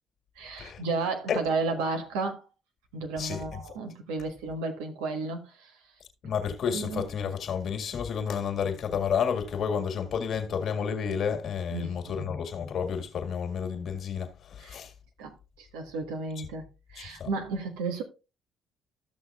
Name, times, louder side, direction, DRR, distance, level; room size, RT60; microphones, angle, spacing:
voice 1, 0.4-2.4 2.9-5.7 6.2-6.3 6.7-7.0 11.7-12.3 14.6-14.8 15.2-18.0, right 3 dB, 85° right, 1.3 m, -33 dB
voice 2, 3.2-3.6 6.2-14.9 17.0-17.3, left 7 dB, 60° left, 1.7 m, -31 dB
13.5 x 6.3 x 2.4 m
supercardioid pair, 60°, 0 cm